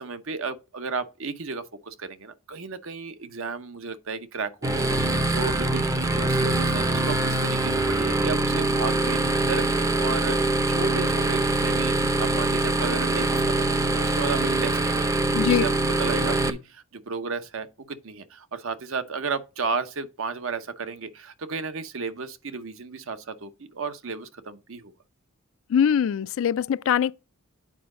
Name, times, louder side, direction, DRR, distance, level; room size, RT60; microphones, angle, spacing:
voice 1, 0.0-15.1 15.4-15.7 16.0-24.9, right 4 dB, 65° right, 0.8 m, -33 dB
sound 1, 4.6-16.5, right 2 dB, 15° right, 0.6 m, -24 dB
voice 2, 15.3-15.6 25.7-27.1, left 8 dB, 65° left, 0.3 m, -22 dB
8.6 x 4.8 x 3.7 m
head